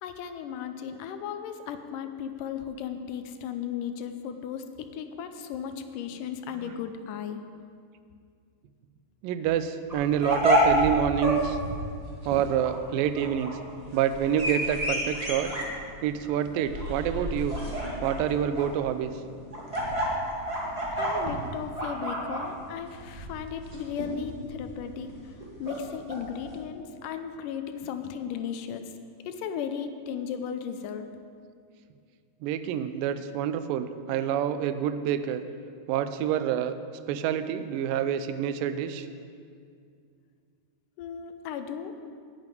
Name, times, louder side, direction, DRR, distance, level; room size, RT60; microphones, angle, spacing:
voice 1, 0.0-7.4 15.9-16.0 20.9-28.8 29.3-31.1 41.0-42.0, left 8 dB, 80° left, 8 dB, 2.2 m, -36 dB
voice 2, 9.2-11.6 12.3-13.6 13.9-15.5 16.0-17.6 18.0-19.2 32.4-35.4 35.9-36.7 37.1-39.1, right 9 dB, 90° right, 11 dB, 2.3 m, -27 dB
sound 1, 9.9-26.5, equal, 20° right, 1.2 m, -30 dB
9.5 x 6.9 x 9.1 m, 2.2 s
omnidirectional pair, 3.9 m